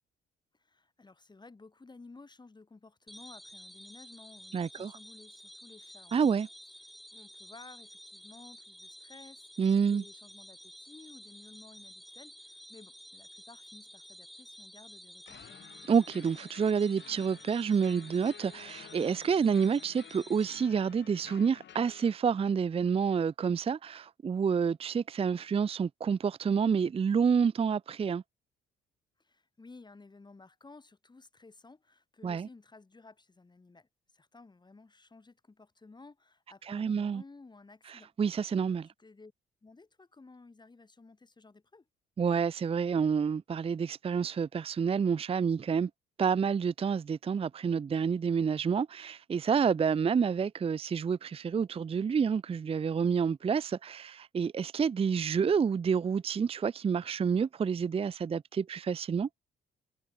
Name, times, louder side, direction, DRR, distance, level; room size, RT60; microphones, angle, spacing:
voice 1, 0.5-6.3 7.1-15.8 29.2-38.1 39.0-39.3 39.6-41.9, left 3 dB, 20° left, 2.4 m, -55 dB
sound 1, 3.1-20.6, equal, ahead, 1.0 m, -51 dB
voice 2, 4.5-4.9 6.1-6.5 9.6-10.0 15.9-28.2 32.2-32.5 36.7-37.2 37.9-38.9 42.2-45.9 46.2-59.3, right 6 dB, 30° right, 0.5 m, -28 dB
sound 2, 15.3-22.1, left 10 dB, 65° left, 5.4 m, -53 dB
cardioid pair, 90°, 20 cm